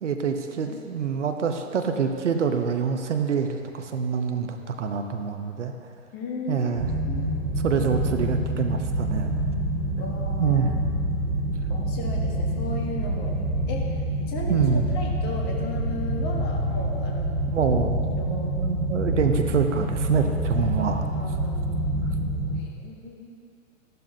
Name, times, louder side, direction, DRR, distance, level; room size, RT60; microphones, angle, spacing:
voice 1, 0.0-5.7 6.5-6.9 7.6-9.3 10.4-10.7 14.5-14.9 17.5-18.0 18.3-21.0, right 6 dB, 60° right, 5 dB, 1.0 m, -25 dB
voice 2, 6.1-6.7 7.0-7.3 10.0-10.6 11.7-13.4 13.7-14.0 14.3-17.7 18.1-18.5 20.2-21.9 22.6-23.3, left 3 dB, 25° left, 0 dB, 1.4 m, -36 dB
sound 1, 6.7-22.6, right 1 dB, 80° right, 1.5 m, -27 dB
14.0 x 12.0 x 2.8 m, 2.4 s
figure-of-eight pair, 115°, 41 cm